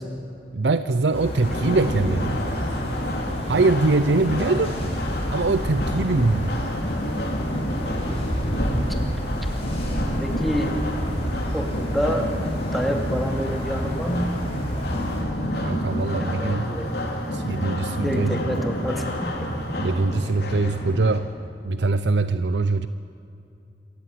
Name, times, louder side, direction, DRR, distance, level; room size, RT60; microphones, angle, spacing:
voice 1, 0.5-2.4 3.5-4.7 5.3-6.6 15.5-16.7 17.3-18.4 19.8-21.3 21.6-22.9, right 3 dB, 75° right, 12 dB, 0.6 m, -22 dB
sound 1, 1.1-15.2, equal, 35° left, 5.2 m, -31 dB
sound 2, 1.4-21.2, equal, 65° left, 3.3 m, -29 dB
voice 2, 7.8-8.5 10.2-10.8 11.5-12.3 12.6-14.3 16.2-16.9 18.0-19.3, equal, ahead, 2 dB, 2.4 m, -28 dB
26.0 x 15.0 x 9.4 m, 2.6 s
head